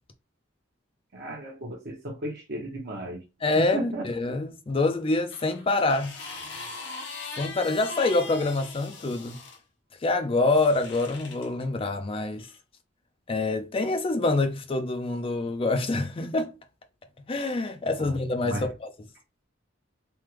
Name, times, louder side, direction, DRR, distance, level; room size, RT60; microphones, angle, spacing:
voice 1, 1.1-3.2 3.5-4.0 18.0-18.1 18.4-18.7, right 1 dB, 55° right, 0.9 m, -34 dB
voice 2, 3.4-6.2 7.4-9.4 10.0-12.5 13.3-16.5 17.3-18.9, left 2 dB, 30° left, 0.4 m, -26 dB
sound 1, 5.3-9.6 10.4-11.5 12.4-12.6, left 4 dB, 60° left, 0.8 m, -40 dB
3.4 x 2.2 x 3.0 m
head